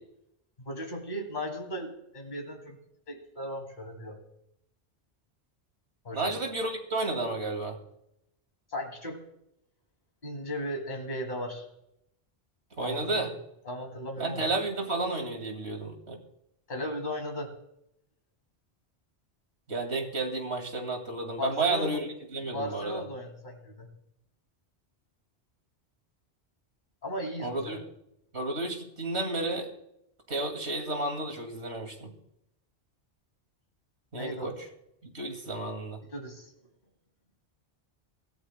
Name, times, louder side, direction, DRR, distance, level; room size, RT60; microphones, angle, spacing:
voice 1, 0.6-2.8 3.1-4.2 6.0-6.3 8.7-9.2 10.2-11.6 12.8-13.3 13.6-14.5 16.7-17.5 21.4-22.0 22.5-23.9 27.0-27.8 34.1-34.5 36.1-36.5, left 1 dB, 45° left, 2 dB, 2.8 m, -36 dB
voice 2, 6.1-7.8 12.8-13.3 14.2-16.2 19.7-23.0 27.4-27.8 28.3-29.7 30.3-32.1 34.1-34.6 35.1-36.0, right 2 dB, 75° right, 4 dB, 2.5 m, -32 dB
25.0 x 14.5 x 2.2 m, 0.80 s
omnidirectional pair, 1.1 m